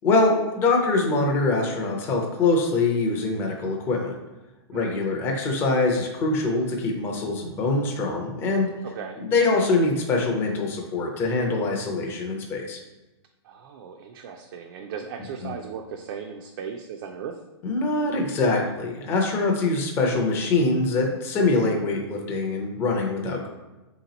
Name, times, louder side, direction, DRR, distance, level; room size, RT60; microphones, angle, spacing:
voice 1, 0.0-4.1 4.7-8.7 9.2-12.8 15.4-15.5 17.6-23.5, left 3 dB, 15° left, 0 dB, 0.4 m, -24 dB
voice 2, 4.7-5.0 8.8-9.2 13.4-17.4, right 6 dB, 50° right, 2 dB, 0.4 m, -37 dB
3.3 x 2.9 x 3.9 m, 1.1 s
hypercardioid pair, 160°, 15 cm